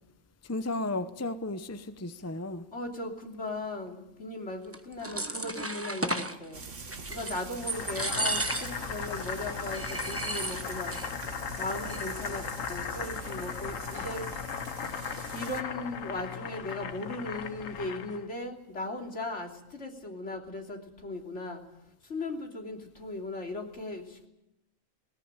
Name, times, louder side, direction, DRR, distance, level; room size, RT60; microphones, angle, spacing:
voice 1, 0.4-2.7, left 2 dB, 15° left, 11 dB, 0.7 m, -34 dB
voice 2, 2.7-11.0 11.6-14.3 15.3-21.6 22.0-24.3, left 2 dB, 65° left, 2 dB, 3.5 m, -38 dB
sound 1, 4.7-6.4 6.9-7.4 7.7-8.9 9.2-9.3 9.7-11.1 11.3-11.4 11.7-12.2, right 1 dB, 10° right, 1.1 m, -33 dB
Frying (food), 6.5-15.6, right 4 dB, 70° right, 2.1 m, -43 dB
Boiling, 7.6-18.3, left 7 dB, 90° left, 1.4 m, -38 dB
20.0 x 19.5 x 9.0 m, 0.88 s
omnidirectional pair, 1.3 m